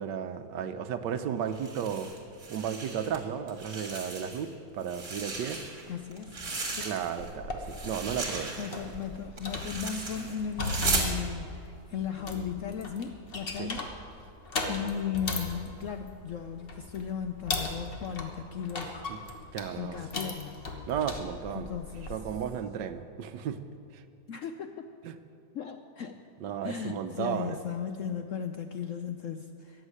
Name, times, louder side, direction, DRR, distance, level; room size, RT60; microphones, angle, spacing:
voice 1, 0.0-2.1 2.5-4.5 4.7-5.6 6.8-8.6 13.6-13.7 19.1-19.2 19.5-20.0 20.9-21.7 22.1-23.6 23.9-24.0 25.0-25.1 26.4-27.6, right 8 dB, 80° right, 10 dB, 1.4 m, -34 dB
sound 1, 1.5-3.2 3.5-4.5 4.8-7.3 7.6-11.1, right 3 dB, 45° right, 2.3 m, -36 dB
voice 2, 5.9-6.4 6.7-6.9 8.6-13.9 14.6-19.0 19.8-20.6 21.5-22.2 24.3-24.9 25.5-26.2 26.6-29.9, left 7 dB, 70° left, 7 dB, 0.7 m, -36 dB
sound 2, 7.2-22.2, left 2 dB, 35° left, 1.3 m, -38 dB
14.5 x 7.3 x 9.8 m, 2.5 s
omnidirectional pair, 1.9 m